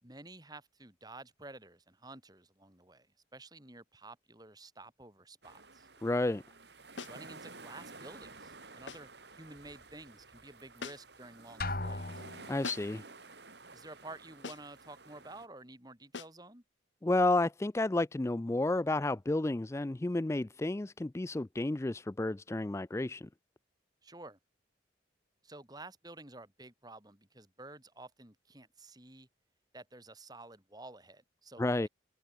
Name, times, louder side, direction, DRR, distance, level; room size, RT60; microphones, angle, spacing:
voice 1, 0.0-3.1 3.3-5.9 7.1-12.3 13.7-16.6 24.0-24.4 25.4-29.3 29.7-31.9, right 2 dB, 20° right, 4.2 m, -51 dB
sound 1, 5.4-15.5, right 3 dB, 65° right, 5.7 m, -53 dB
voice 2, 6.0-6.4 12.5-13.0 17.0-23.3 31.6-31.9, left 2 dB, 15° left, 0.4 m, -31 dB
sound 2, 7.0-7.3 8.9-9.2 10.8-11.2 12.6-13.1 14.4-14.8 16.1-16.4, left 4 dB, 80° left, 1.5 m, -44 dB
Drum, 11.6-12.8, left 2 dB, 50° left, 4.1 m, -38 dB
open air
head